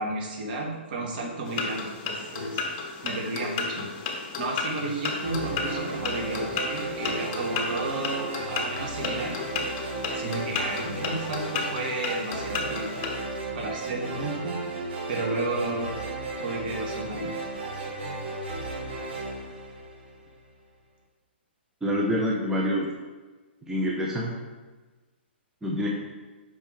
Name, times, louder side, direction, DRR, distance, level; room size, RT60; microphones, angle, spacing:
voice 1, 0.0-2.6 3.0-3.9 4.4-9.3 10.1-13.1 13.5-14.6 15.1-16.0 16.4-17.4, right 2 dB, 50° right, -1 dB, 1.6 m, -32 dB
sound 1, 1.4-13.2, left 4 dB, 40° left, 1.0 m, -33 dB
sound 2, 5.2-20.4, right 3 dB, 70° right, 1.6 m, -35 dB
voice 2, 21.8-22.9 23.6-24.4 25.6-25.9, equal, 5° right, -3 dB, 0.7 m, -26 dB
5.6 x 5.3 x 3.3 m, 1.3 s
hypercardioid pair, 125°, 6 cm